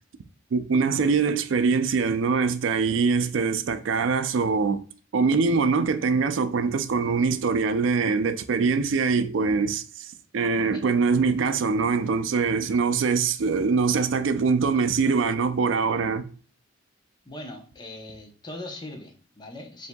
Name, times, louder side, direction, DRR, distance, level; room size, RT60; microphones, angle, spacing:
voice 1, 0.5-4.8 5.1-16.3, right 5 dB, 75° right, 0.4 m, -23 dB
voice 2, 17.2-19.9, left 1 dB, 20° left, 0.7 m, -40 dB
7.0 x 2.7 x 2.2 m
head